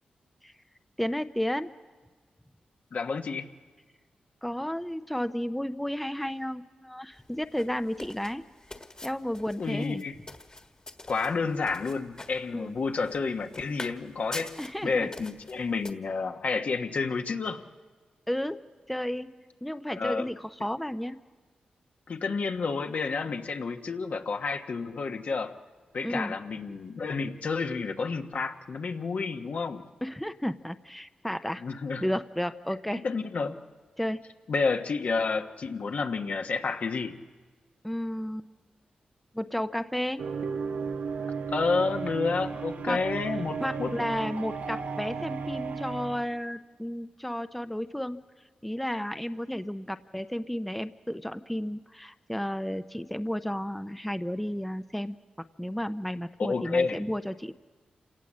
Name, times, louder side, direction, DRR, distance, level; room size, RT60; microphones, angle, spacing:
voice 1, 1.0-1.7 4.4-8.4 9.0-10.0 12.5-12.7 14.6-15.1 18.3-18.6 18.9-21.2 26.0-26.3 30.0-31.6 32.0-33.0 34.0-34.2 37.8-38.5 39.3-40.3 42.9-43.1 43.6-48.2 48.6-55.2 55.6-57.5, equal, 5° left, 10 dB, 0.6 m, -32 dB
voice 2, 2.9-3.5 9.6-10.2 11.1-14.5 14.8-17.6 19.9-20.3 22.1-25.5 25.9-29.8 31.6-32.1 32.9-33.6 34.5-37.2 41.5-44.0 56.4-57.0, left 4 dB, 65° left, 4 dB, 1.3 m, -30 dB
sound 1, 7.1-15.9, left 2 dB, 30° left, 1.6 m, -46 dB
sound 2, 40.2-46.2, right 5 dB, 75° right, 1.1 m, -34 dB
27.5 x 18.0 x 7.5 m, 1.4 s
cardioid pair, 70°, 3 cm